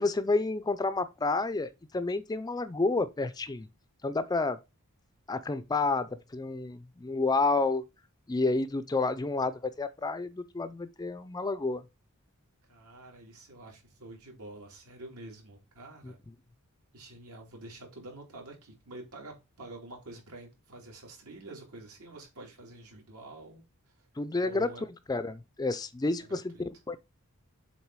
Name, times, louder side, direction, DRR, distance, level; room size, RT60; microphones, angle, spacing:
voice 1, 0.0-3.7 4.0-4.6 5.3-7.8 8.3-11.8 16.0-16.1 24.2-24.7 25.1-27.0, left 3 dB, 15° left, 0.4 m, -30 dB
voice 2, 12.7-16.2 16.9-24.0 24.4-24.9 26.2-26.6, right 2 dB, 80° right, 2.8 m, -48 dB
7.3 x 3.7 x 4.6 m
head